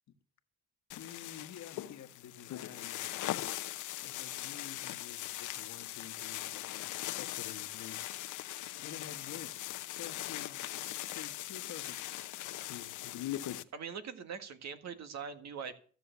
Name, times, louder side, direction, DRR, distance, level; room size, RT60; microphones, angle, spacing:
sound 1, 0.9-13.6, left 14 dB, 80° left, 0.8 m, -40 dB
voice 1, 1.0-3.0 4.0-8.0 8.8-9.5 9.9-12.0, left 9 dB, 65° left, 8 dB, 1.3 m, -49 dB
voice 2, 13.7-15.8, right 6 dB, 60° right, 9 dB, 1.8 m, -42 dB
14.5 x 6.9 x 8.1 m, 0.43 s
cardioid pair, 90°, 30 cm